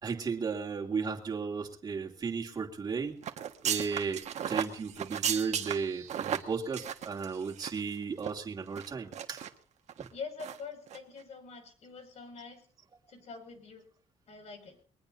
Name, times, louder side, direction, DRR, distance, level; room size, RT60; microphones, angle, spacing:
voice 1, 0.0-3.2 3.6-9.4 10.0-10.1, right 5 dB, 30° right, 0 dB, 2.9 m, -35 dB
sound 1, 3.2-7.9 8.2-8.3 8.8-9.5 9.9-10.1 10.4-10.6 10.9-11.0, right 9 dB, 60° right, 1.6 m, -35 dB
voice 2, 10.1-12.6 13.1-13.8 14.3-14.8, left 5 dB, 55° left, 6 dB, 6.0 m, -45 dB
22.5 x 20.0 x 2.7 m, 0.42 s
cardioid pair, 155°, 13 cm